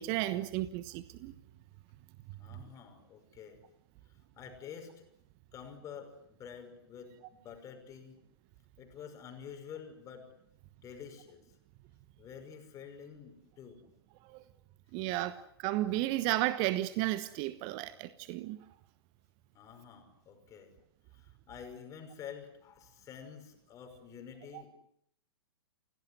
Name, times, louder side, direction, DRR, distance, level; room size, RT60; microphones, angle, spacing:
voice 1, 0.0-1.3 14.3-14.4 14.9-18.6 24.5-24.6, right 16 dB, 35° right, 1.3 m, -33 dB
voice 2, 2.4-3.6 4.4-5.1 5.5-8.2 8.8-10.3 10.8-11.6 12.2-13.9 19.5-20.7 21.1-24.7, left 7 dB, 25° left, 5.8 m, -49 dB
29.0 x 18.0 x 9.7 m
figure-of-eight pair, 110°, 14 cm